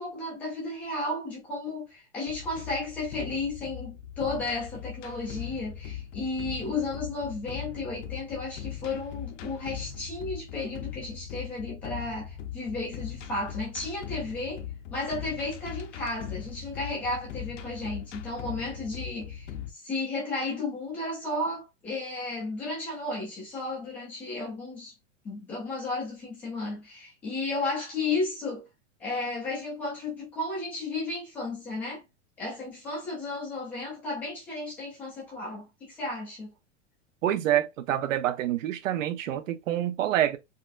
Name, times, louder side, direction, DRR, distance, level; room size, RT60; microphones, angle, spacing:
voice 1, 0.0-14.6 14.9-24.9 25.2-28.7 29.0-32.0 32.4-36.5, left 2 dB, 5° left, 0.3 m, -33 dB
sound 1, 2.3-19.7, left 9 dB, 70° left, 0.7 m, -40 dB
voice 2, 37.2-40.4, right 12 dB, 85° right, 0.8 m, -27 dB
4.1 x 2.6 x 2.5 m
supercardioid pair, 170°, 38 cm